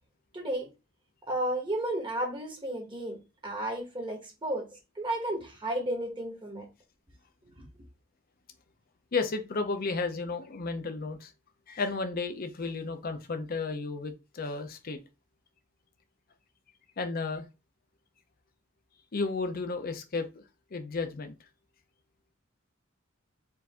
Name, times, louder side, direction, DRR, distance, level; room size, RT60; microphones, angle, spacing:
voice 1, 0.3-0.7 1.3-3.2 3.4-4.7 5.0-6.7 7.6-7.7, right 1 dB, 25° right, 1.0 m, -33 dB
voice 2, 9.1-11.3 11.7-15.0 17.0-17.4 19.1-20.4 20.7-21.3, left 4 dB, 45° left, 0.6 m, -33 dB
4.5 x 2.6 x 3.5 m
head